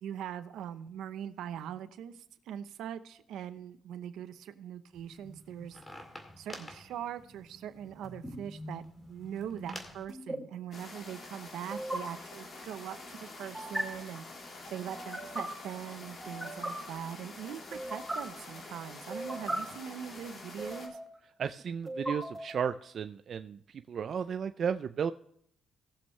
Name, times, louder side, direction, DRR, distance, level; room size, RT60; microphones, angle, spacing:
voice 1, 0.0-5.8 6.4-8.8 9.1-14.2 14.7-21.0, right 9 dB, 80° right, 11 dB, 0.8 m, -42 dB
sound 1, 4.9-10.0, left 1 dB, 20° left, 2.1 m, -48 dB
sound 2, 8.0-8.3 10.1-10.4 11.7-12.0 13.5-13.8 14.9-15.4 16.2-16.7 17.7-18.2 19.1-19.6 20.6-21.2 21.9-22.7, right 1 dB, ahead, 4.5 m, -37 dB
Creek in Krka National Park Croatia (Close recording), 10.7-20.9, left 2 dB, 50° left, 3.3 m, -47 dB
voice 2, 21.4-25.1, right 7 dB, 55° right, 9 dB, 0.4 m, -34 dB
18.5 x 7.3 x 3.2 m, 0.69 s
cardioid pair, 90°, 0 cm